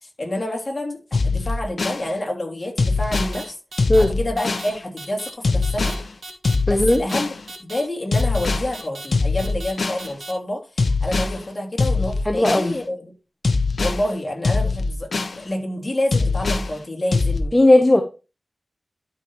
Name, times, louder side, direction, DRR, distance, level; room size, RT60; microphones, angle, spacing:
voice 1, 0.0-3.5 4.0-5.9 6.7-7.3 7.6-13.1 13.8-17.6, left 1 dB, 40° left, 0 dB, 3.2 m, -28 dB
sound 1, 1.1-2.0 2.8-3.4 3.8-4.7 5.4-6.0 6.4-7.4 8.1-8.7 9.1-10.0 10.8-11.4 11.8-12.7 13.4-14.0 14.4-15.4 16.1-16.7 17.1-17.4, left 3 dB, 65° left, 1.1 m, -22 dB
sound 2, 3.1-3.4 3.7-4.0 4.4-4.7 5.0-5.3 5.6-5.9 6.2-6.6 6.9-7.2 7.5-7.8 8.1-8.5 8.7-9.1 9.4-9.7 10.0-10.3, right 2 dB, 70° right, 2.4 m, -37 dB
voice 2, 6.7-7.0 12.3-12.8 17.5-18.0, left 1 dB, 20° left, 6 dB, 1.0 m, -15 dB
12.5 x 5.5 x 3.1 m, 0.31 s
cardioid pair, 50°, 0 cm